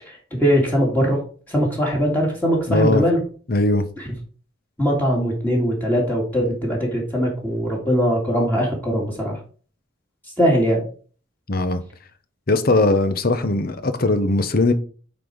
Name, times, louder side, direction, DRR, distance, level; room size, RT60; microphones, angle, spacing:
voice 1, 0.1-1.2 1.5-3.2 4.8-9.4 10.4-10.8, equal, 10° left, -3 dB, 2.1 m, -21 dB
voice 2, 2.7-3.0 3.5-3.9 11.5-11.8 12.5-14.7, left 2 dB, 50° left, 10 dB, 0.9 m, -19 dB
8.7 x 4.1 x 4.7 m, 0.41 s
head